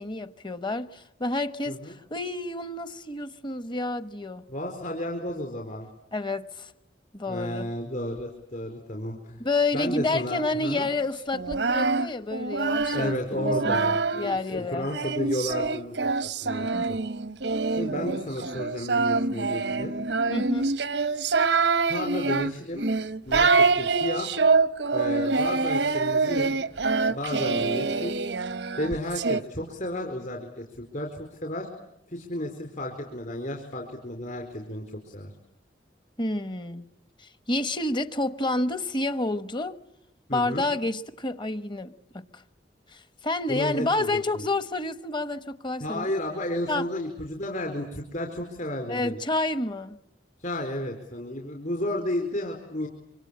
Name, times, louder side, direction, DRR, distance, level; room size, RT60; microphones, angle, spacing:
voice 1, 0.0-4.4 6.1-6.7 7.1-7.7 9.4-14.9 16.7-16.9 20.3-20.7 36.2-36.8 37.2-39.7 40.3-42.2 42.9-46.0 46.7-46.8 48.9-50.0, left 2 dB, 30° left, 1.2 m, -29 dB
voice 2, 1.7-2.0 4.5-5.9 7.3-9.4 9.7-10.9 12.9-16.1 16.4-17.0 17.7-19.9 21.9-22.8 23.3-24.3 24.9-26.6 27.1-28.2 28.8-31.7 32.1-35.3 40.3-40.7 43.5-44.4 45.8-49.2 50.4-52.9, left 1 dB, 50° left, 4.5 m, -32 dB
Singing, 11.3-14.4 14.9-29.4, right 4 dB, 85° right, 1.0 m, -25 dB
27.0 x 25.0 x 8.7 m
head